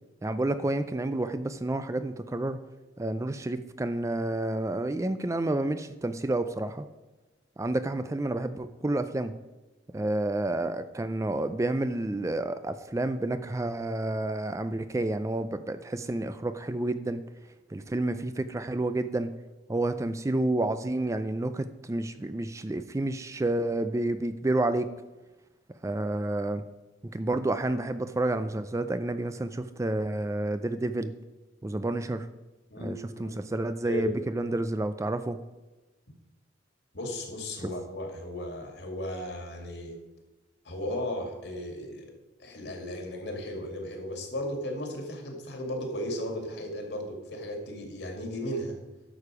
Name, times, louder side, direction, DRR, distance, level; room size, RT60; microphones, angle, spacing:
voice 1, 0.2-2.6 3.0-6.9 7.6-9.3 9.9-17.2 17.7-19.3 19.7-24.9 25.8-26.6 27.1-31.1 31.6-32.3 32.8-35.4 37.6-37.7, right 2 dB, 15° right, 11 dB, 0.3 m, -30 dB
voice 2, 32.7-33.4 33.8-34.1 36.9-39.9 40.6-42.1 42.4-48.8, left 1 dB, 65° left, 3 dB, 2.2 m, -35 dB
11.0 x 6.7 x 4.9 m, 1.1 s
head